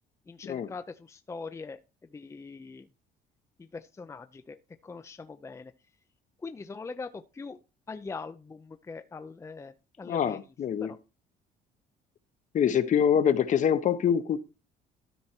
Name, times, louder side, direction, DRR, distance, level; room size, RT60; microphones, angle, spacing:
voice 1, 0.3-1.8 2.1-2.9 3.6-4.6 4.8-5.7 6.4-7.6 7.9-10.4 10.8-11.0, left 4 dB, 15° left, 0.5 m, -42 dB
voice 2, 10.1-10.9 12.5-14.4, left 8 dB, 50° left, 0.9 m, -25 dB
13.0 x 4.5 x 4.4 m
cardioid pair, 110°, 17 cm